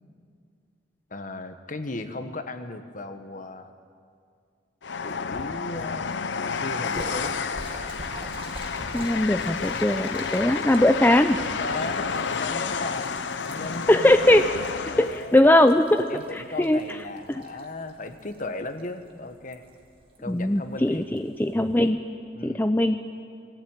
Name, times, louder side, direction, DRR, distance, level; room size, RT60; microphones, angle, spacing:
voice 1, 1.1-3.7 5.0-6.1 6.3-7.4 11.6-12.1 12.4-14.4 14.9-15.4 16.1-19.6 20.2-21.0 22.3-22.7, left 2 dB, 45° left, 8 dB, 1.4 m, -36 dB
Train, 4.8-15.3, left 5 dB, 75° left, 0.8 m, -31 dB
Splash splatter, 6.9-21.9, right 1 dB, 30° right, 2.1 m, -46 dB
voice 2, 8.9-11.4 13.9-14.4 15.0-16.8 20.3-22.0 22.4-23.0, left 1 dB, 10° left, 7 dB, 0.5 m, -20 dB
22.5 x 15.5 x 9.1 m, 2.3 s
head